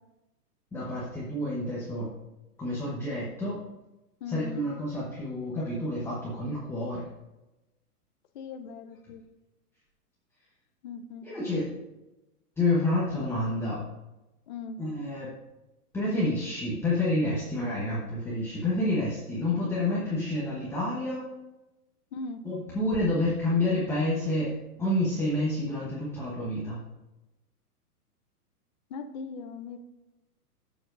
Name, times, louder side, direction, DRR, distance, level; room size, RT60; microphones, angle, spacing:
voice 1, 0.7-2.1 2.6-3.6 4.3-7.1 11.2-11.7 12.6-13.8 14.8-15.4 15.9-21.3 22.4-24.5 24.8-26.8, left 1 dB, 5° left, -7 dB, 1.0 m, -29 dB
voice 2, 4.2-4.7 8.3-9.2 10.8-11.3 14.5-14.8 22.1-22.4 28.9-29.8, left 5 dB, 30° left, 6 dB, 0.5 m, -39 dB
13.5 x 7.0 x 2.5 m, 1.0 s
hypercardioid pair, 150°, 47 cm